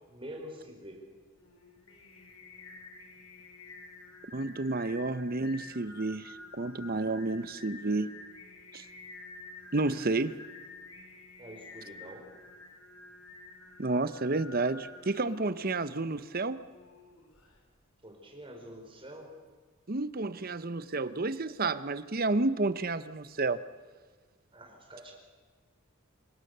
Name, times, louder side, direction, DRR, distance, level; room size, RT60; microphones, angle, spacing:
voice 1, 0.1-1.0 11.4-12.2 18.0-19.3 24.5-25.1, equal, 25° right, 1 dB, 4.8 m, -46 dB
Singing, 1.4-17.6, left 3 dB, 80° left, 4.8 m, -50 dB
voice 2, 4.3-8.1 8.7-8.8 9.7-10.4 13.8-16.6 19.9-23.6, right 3 dB, 45° right, 14 dB, 0.8 m, -30 dB
28.0 x 18.0 x 6.8 m, 1.4 s
head